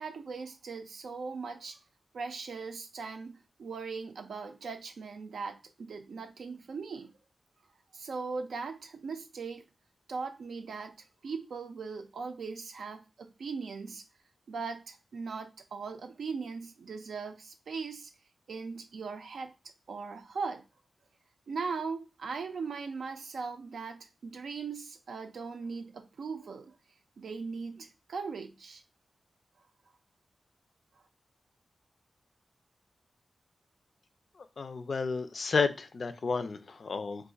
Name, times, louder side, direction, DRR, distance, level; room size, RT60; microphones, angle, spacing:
voice 1, 0.0-1.8 2.1-7.1 7.9-9.6 10.1-11.0 11.2-14.0 14.5-18.1 18.5-19.5 19.9-20.6 21.5-26.8 27.2-28.8, right 4 dB, 85° right, 0.4 m, -39 dB
voice 2, 34.6-37.3, left 4 dB, 55° left, 0.3 m, -31 dB
2.5 x 2.3 x 3.8 m
wide cardioid pair, 85°, 0 cm